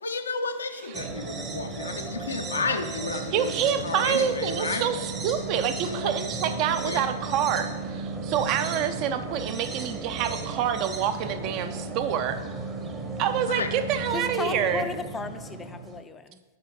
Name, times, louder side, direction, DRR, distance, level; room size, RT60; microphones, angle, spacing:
voice 1, 0.0-3.5 3.8-4.9 5.8-6.6 6.8-7.1 13.5-13.7, left 4 dB, 80° left, 0.6 m, -32 dB
sound 1, 0.9-16.0, right 3 dB, 20° right, 0.8 m, -34 dB
voice 2, 3.3-12.4 13.2-14.9, right 9 dB, 40° right, 0.5 m, -27 dB
voice 3, 14.1-16.4, left 4 dB, 15° left, 0.4 m, -35 dB
7.9 x 4.5 x 3.5 m
figure-of-eight pair, 105°, 0 cm